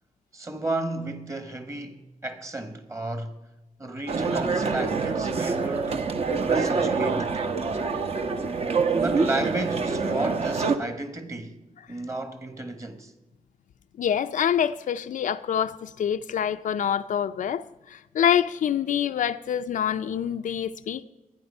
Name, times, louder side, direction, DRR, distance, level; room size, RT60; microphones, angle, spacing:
voice 1, 0.3-3.4 3.8-6.0 6.4-7.4 8.9-11.6 11.9-13.1, right 2 dB, 20° right, 1.3 m, -33 dB
sound 1, 4.1-10.8, right 4 dB, 45° right, 1.0 m, -25 dB
voice 2, 14.0-21.0, left 9 dB, 70° left, 0.5 m, -26 dB
23.0 x 9.6 x 5.4 m
wide cardioid pair, 145°, 14 cm